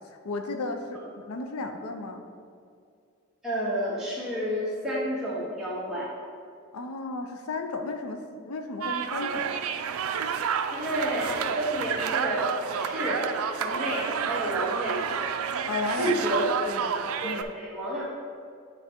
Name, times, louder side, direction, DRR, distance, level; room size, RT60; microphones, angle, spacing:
voice 1, 0.1-2.2 6.7-9.7 15.7-16.2 16.7-16.9 17.2-17.4, left 3 dB, 90° left, 5 dB, 0.6 m, -34 dB
voice 2, 3.4-6.1 10.7-12.5 12.7-15.1 16.0-16.4 17.2-18.0, equal, ahead, -9 dB, 1.6 m, -30 dB
sound 1, 8.8-17.4, right 7 dB, 85° right, 0.4 m, -30 dB
9.6 x 3.4 x 4.4 m, 2.3 s
head